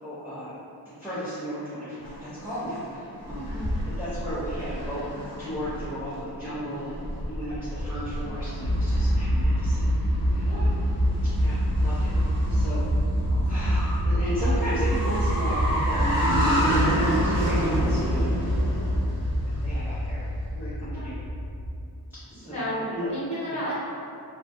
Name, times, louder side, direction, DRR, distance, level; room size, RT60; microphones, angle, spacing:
voice 1, 0.0-0.6 1.0-3.5 4.0-5.0 5.4-7.0 7.2-10.8 11.4-12.1 12.5-12.9 13.5-18.4 19.6-21.2 22.3-22.7 22.9-23.1 23.5-23.6, equal, 5° right, -13 dB, 0.4 m, -35 dB
sound 1, 2.0-20.1, equal, 45° left, 0.7 m, -31 dB
sound 2, 8.6-21.8, equal, 60° right, 0.6 m, -25 dB
voice 2, 22.5-23.7, equal, 15° left, -12 dB, 1.0 m, -33 dB
2.5 x 2.2 x 2.5 m, 2.5 s
wide cardioid pair, 180°, 40 cm